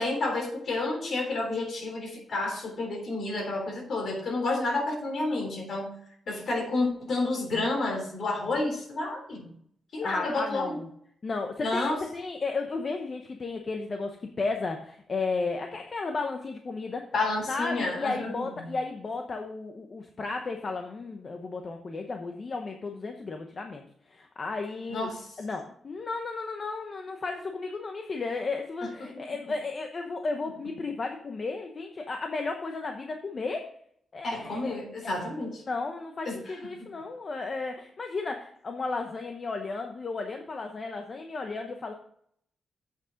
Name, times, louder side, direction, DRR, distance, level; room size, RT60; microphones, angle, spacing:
voice 1, 0.0-5.9 6.3-9.5 9.9-10.8 11.6-12.0 17.1-18.7 24.9-25.2 34.2-35.6 36.2-36.4 36.8-36.9, left 2 dB, 55° left, 1 dB, 3.4 m, -30 dB
voice 2, 10.0-10.9 11.2-11.9 12.1-17.0 17.5-33.7 34.1-34.8 35.0-35.2 35.7-41.9, left 3 dB, 35° left, 4 dB, 0.9 m, -34 dB
8.2 x 6.5 x 5.1 m, 0.66 s
wide cardioid pair, 140°, 0 cm